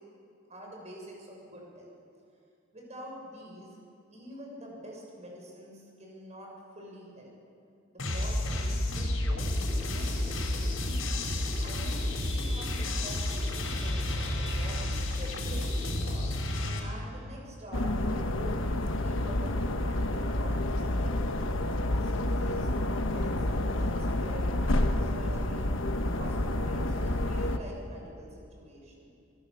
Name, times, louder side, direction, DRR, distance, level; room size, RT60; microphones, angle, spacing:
voice 1, 0.5-1.9 2.7-3.7 4.1-7.3 7.9-10.9 11.6-16.3 16.8-21.4 21.9-24.6 25.0-25.8 26.2-29.1, right 1 dB, 35° right, -1 dB, 6.9 m, -46 dB
sound 1, 8.0-16.8, left 1 dB, 85° left, 4.5 m, -31 dB
sound 2, 17.7-27.6, left 1 dB, 70° left, 1.3 m, -29 dB
26.0 x 20.0 x 7.1 m, 2.4 s
head